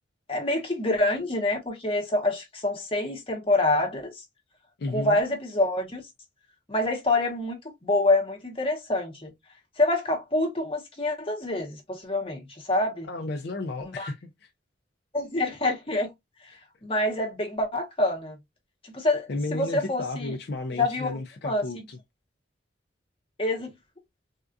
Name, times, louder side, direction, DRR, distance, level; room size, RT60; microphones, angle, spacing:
voice 1, 0.3-4.1 4.9-6.0 6.7-9.3 9.8-13.1 13.8-14.1 15.1-16.1 16.4-16.6 16.8-18.4 18.9-20.3 20.8-21.1 21.4-21.6 23.4-23.7, left 2 dB, 30° left, 0.9 m, -26 dB
voice 2, 4.8-5.2 13.1-14.5 19.3-22.0, left 2 dB, 55° left, 0.4 m, -33 dB
3.6 x 2.3 x 2.5 m
head